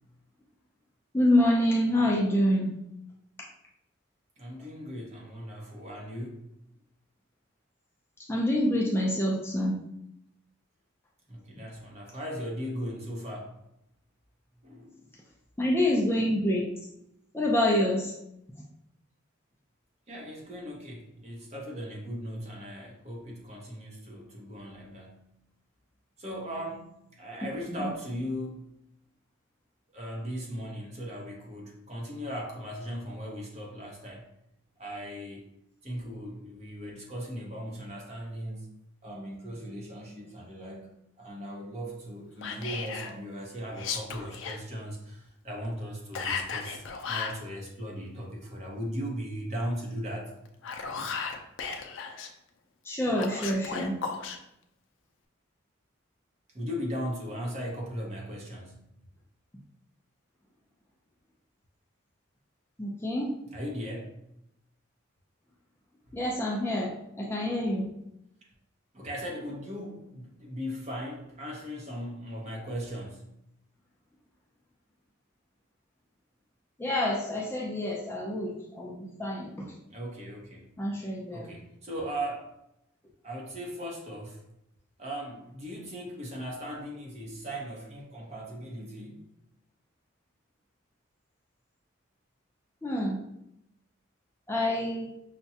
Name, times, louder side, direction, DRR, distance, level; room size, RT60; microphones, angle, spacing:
voice 1, 1.1-2.7 8.3-9.8 15.6-16.7 17.3-18.1 27.7-27.9 52.8-53.9 62.8-63.3 66.1-67.8 76.8-79.7 80.8-81.5 92.8-93.2 94.5-95.1, left 1 dB, 10° left, -3 dB, 0.4 m, -27 dB
voice 2, 4.4-6.5 11.3-13.6 14.6-15.0 20.1-25.2 26.2-28.6 29.9-34.3 34.8-35.4 35.8-38.7 39.0-40.9 41.2-50.3 56.5-58.9 63.5-64.1 66.1-66.2 68.9-73.3 79.9-80.7 81.3-82.5 83.2-84.4 85.0-89.2, equal, 35° right, -1 dB, 0.8 m, -38 dB
Whispering, 42.4-43.1 43.7-44.6 46.1-47.4 50.4-52.3 53.1-54.4, left 5 dB, 70° left, 0.5 m, -35 dB
5.7 x 2.2 x 2.7 m, 0.80 s
head